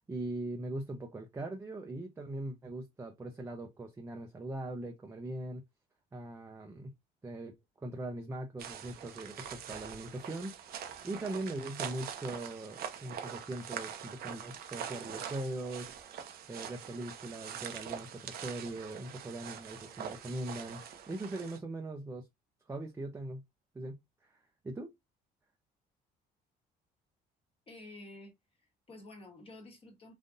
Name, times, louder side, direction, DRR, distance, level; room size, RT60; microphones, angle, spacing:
voice 1, 0.0-5.6 6.1-6.9 7.2-7.5 7.8-20.8 21.1-22.3 22.7-23.4 23.7-24.4 24.6-24.9, right 2 dB, 15° right, 0.6 m, -41 dB
sound 1, 8.6-21.6, right 8 dB, 65° right, 0.8 m, -44 dB
voice 2, 27.7-30.1, left 2 dB, 35° left, 1.3 m, -51 dB
3.7 x 2.5 x 2.6 m
cardioid pair, 110°, 17 cm